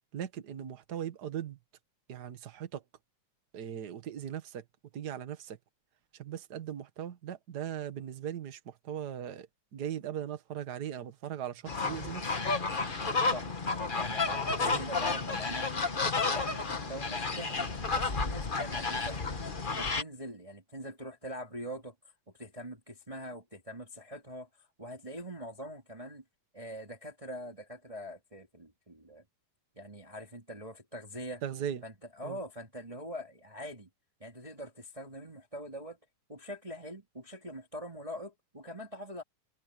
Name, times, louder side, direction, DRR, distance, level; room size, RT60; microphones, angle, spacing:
voice 1, 0.1-1.6 2.1-2.8 3.5-4.6 4.9-5.6 6.1-12.3 14.6-14.8 31.4-31.8 32.2-32.4, right 9 dB, 45° right, 1.5 m, -39 dB
sound 1, 11.7-20.0, left 4 dB, 75° left, 0.4 m, -31 dB
voice 2, 14.0-15.7 16.0-19.4 19.8-21.9 22.4-26.2 26.5-29.2 29.8-31.4 31.8-33.9 34.2-36.0 36.3-39.2, equal, 10° right, 2.4 m, -43 dB
omnidirectional pair, 3.6 m